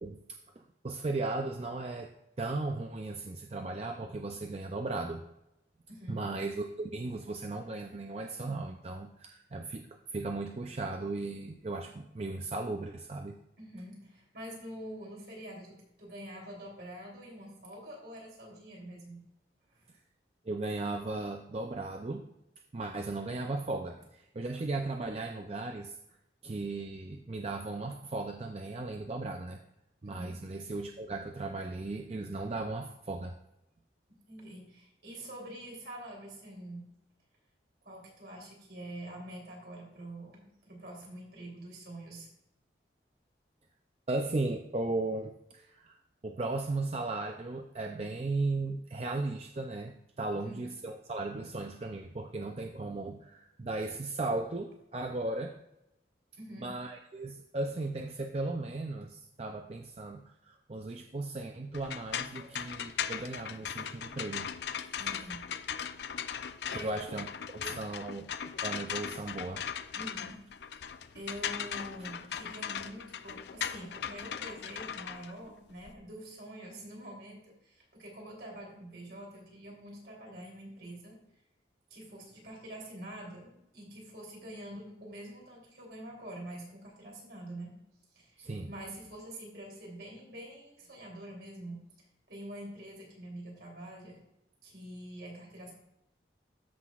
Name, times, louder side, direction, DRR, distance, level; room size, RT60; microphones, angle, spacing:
voice 1, 0.0-2.1 2.4-5.2 6.1-13.4 20.5-22.2 22.7-26.0 26.4-29.6 30.0-33.3 44.1-46.0 46.2-55.5 56.6-64.5 66.8-67.3 67.5-68.3 68.6-69.6 88.4-88.7, right 2 dB, 35° right, 4 dB, 0.4 m, -36 dB
voice 2, 5.9-6.2 13.6-19.2 19.7-19.9 30.0-30.4 34.3-36.9 37.8-42.3 50.4-50.6 56.4-56.7 62.4-62.6 64.9-65.4 66.4-67.1 69.9-70.4 70.8-81.2 81.9-87.7 88.1-91.8 92.3-94.2 94.6-95.7, right 1 dB, 65° right, -2 dB, 3.2 m, -46 dB
sound 1, 61.7-75.9, left 8 dB, 70° left, 0.4 m, -38 dB
13.5 x 5.9 x 2.4 m, 0.85 s
head